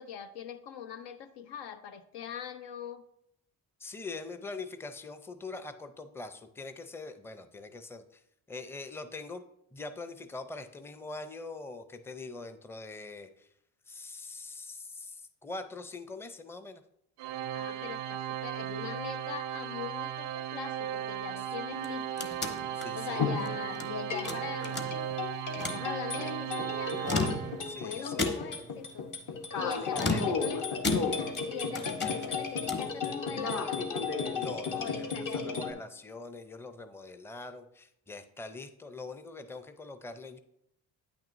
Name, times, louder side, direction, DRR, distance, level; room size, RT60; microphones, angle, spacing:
voice 1, 0.0-3.0 17.5-22.3 22.9-25.0 25.6-27.0 27.8-29.1 29.5-33.9 34.7-35.8, left 8 dB, 80° left, 9 dB, 0.7 m, -42 dB
voice 2, 3.8-8.2 8.5-9.4 9.7-13.5 13.9-16.8 22.7-23.3 27.6-28.1 29.6-30.2 34.3-40.4, left 3 dB, 5° left, 10 dB, 0.5 m, -43 dB
Organ, 17.2-28.0, right 10 dB, 80° right, 0.5 m, -36 dB
sound 1, 21.7-23.9 24.3-25.2 25.5-25.9 26.9-27.7 28.2-28.7 29.9-31.5 31.7-33.0, left 3 dB, 25° left, 1.0 m, -34 dB
sound 2, 23.2-35.7, left 5 dB, 50° left, 1.0 m, -34 dB
8.6 x 6.0 x 2.6 m, 0.78 s
supercardioid pair, 60°, 40 cm